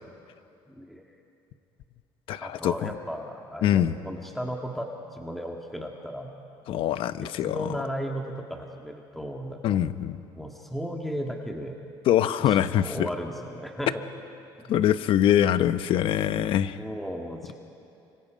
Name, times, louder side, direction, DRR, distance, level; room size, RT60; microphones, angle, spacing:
voice 1, 0.7-1.0 2.4-6.3 7.2-9.8 10.4-11.8 12.5-14.0 14.6-14.7 16.8-17.6, equal, ahead, 1 dB, 1.9 m, -35 dB
voice 2, 2.3-2.9 3.6-4.0 6.7-7.8 9.6-10.2 12.1-13.1 14.7-16.8, left 11 dB, 60° left, 12 dB, 0.9 m, -23 dB
29.5 x 25.5 x 5.3 m, 2.7 s
cardioid pair, 110°, 10 cm